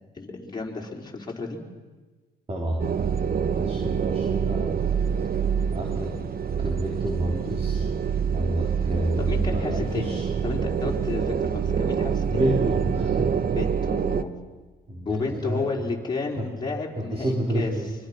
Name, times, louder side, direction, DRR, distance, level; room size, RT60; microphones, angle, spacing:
voice 1, 0.1-1.6 9.2-10.1 10.4-12.4 13.5-14.3 15.0-17.7, left 3 dB, 20° left, -1 dB, 4.6 m, -32 dB
voice 2, 2.5-3.2 3.6-4.8 5.7-6.2 6.6-7.9 8.3-10.3 12.3-13.4 14.9-15.8 16.4-16.7 17.0-17.9, right 1 dB, 30° right, 0 dB, 3.7 m, -29 dB
sound 1, 2.8-14.2, right 7 dB, 50° right, 1.1 m, -26 dB
25.0 x 23.5 x 6.1 m, 1.3 s
cardioid pair, 90°, 20 cm